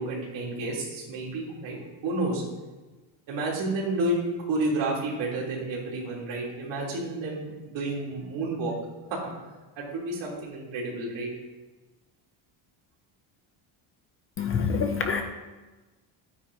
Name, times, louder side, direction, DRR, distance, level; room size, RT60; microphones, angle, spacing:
voice 1, 0.0-1.8 2.0-2.5 3.3-8.7 9.1-9.3 9.8-11.3, right 2 dB, 60° right, -5 dB, 3.3 m, -30 dB
voice 2, 14.4-15.2, left 5 dB, 30° left, 5 dB, 0.3 m, -26 dB
13.0 x 9.4 x 2.8 m, 1.2 s
cardioid pair, 180°, 50 cm